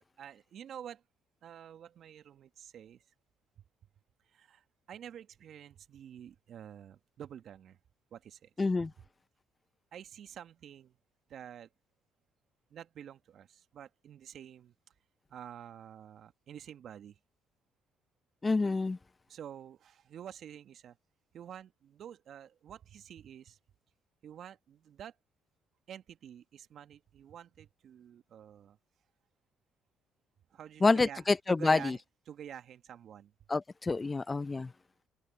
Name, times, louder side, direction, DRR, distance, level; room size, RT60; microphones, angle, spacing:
voice 1, 0.2-1.0 1.4-3.0 4.3-7.8 8.1-8.5 8.8-8.9 9.9-11.0 11.3-11.7 12.7-14.7 15.3-17.2 19.3-21.0 21.3-23.6 24.2-25.1 25.9-28.8 30.5-32.0 32.3-33.3 34.5-34.7, right 9 dB, 60° right, 1.7 m, -49 dB
voice 2, 8.6-8.9 18.4-19.0 30.8-32.0 33.5-34.7, left 3 dB, 30° left, 0.6 m, -27 dB
hypercardioid pair, 55°, 0 cm